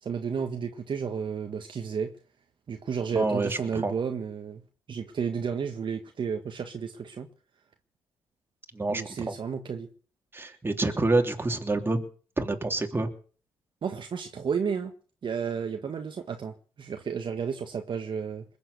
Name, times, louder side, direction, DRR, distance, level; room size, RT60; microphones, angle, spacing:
voice 1, 0.0-2.1 2.7-4.6 4.9-7.3 8.9-9.9 13.8-14.9 15.2-18.4, right 6 dB, 50° right, 1.6 m, -32 dB
voice 2, 3.1-3.9 8.7-9.3 10.3-12.0 12.4-13.1, right 2 dB, 20° right, 3.2 m, -27 dB
21.0 x 7.9 x 8.1 m
supercardioid pair, 60°, 10 cm